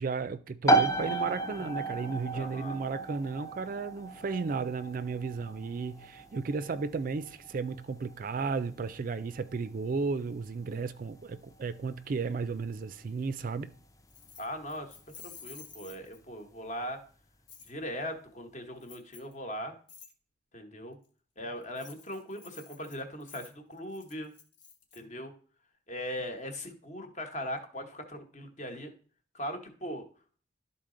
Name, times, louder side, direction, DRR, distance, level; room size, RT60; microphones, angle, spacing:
voice 1, 0.0-13.7, right 4 dB, 45° right, 0.4 m, -34 dB
sound 1, 0.7-15.2, right 2 dB, 20° left, 0.5 m, -34 dB
voice 2, 2.3-2.8 14.4-17.0 17.7-19.7 20.5-21.0 21.4-24.3 24.9-25.3 25.9-28.9 29.3-30.1, equal, 40° left, 1.1 m, -39 dB
Keys jangling, 14.1-16.4 17.5-17.7 18.8-19.3 19.9-20.1 21.6-25.0, left 6 dB, 80° left, 1.4 m, -51 dB
12.0 x 4.0 x 3.8 m
head